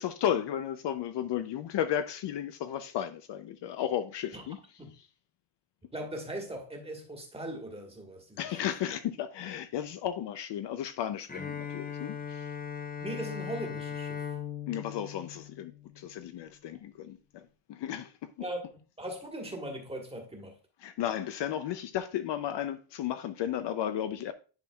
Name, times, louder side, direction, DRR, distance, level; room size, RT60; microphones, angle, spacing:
voice 1, 0.0-4.6 8.4-12.5 14.7-18.1 20.8-24.3, left 10 dB, 60° left, 0.6 m, -34 dB
voice 2, 5.9-8.6 13.0-14.2 18.4-20.5, right 1 dB, 10° right, 1.5 m, -39 dB
Bowed string instrument, 11.3-16.2, left 7 dB, 20° left, 0.7 m, -39 dB
10.5 x 4.4 x 2.3 m
cardioid pair, 135°, 49 cm